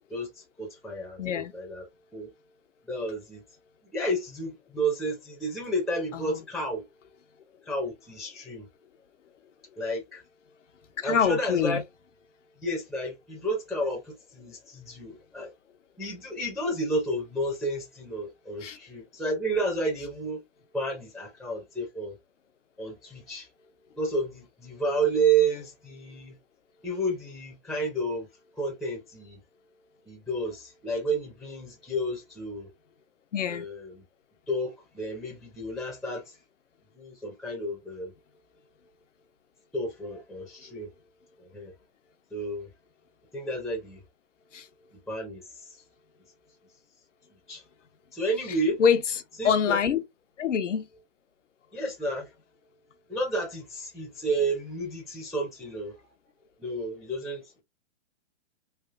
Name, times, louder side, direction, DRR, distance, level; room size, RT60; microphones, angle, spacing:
voice 1, 0.1-1.8 2.1-2.3 2.9-3.4 3.9-6.8 7.7-8.7 9.8-10.2 11.0-11.8 12.6-15.5 16.0-20.4 20.7-22.1 22.8-23.5 24.0-26.4 26.8-28.3 28.6-29.4 30.1-32.7 33.5-33.9 34.5-36.3 37.0-38.1 39.7-40.9 41.5-41.7 42.3-42.7 43.3-44.0 45.1-45.8 47.5-47.6 48.1-48.8 49.4-49.8 51.7-52.3 53.1-56.0 56.6-57.6, right 2 dB, ahead, 0.5 m, -31 dB
voice 2, 1.2-1.5 6.1-6.4 11.0-11.8 18.6-18.8 33.3-33.7 44.5-44.7 48.8-49.0 49.4-50.0 50.4-50.9, left 7 dB, 85° left, 0.7 m, -25 dB
3.3 x 2.4 x 2.4 m
hypercardioid pair, 135°, 35 cm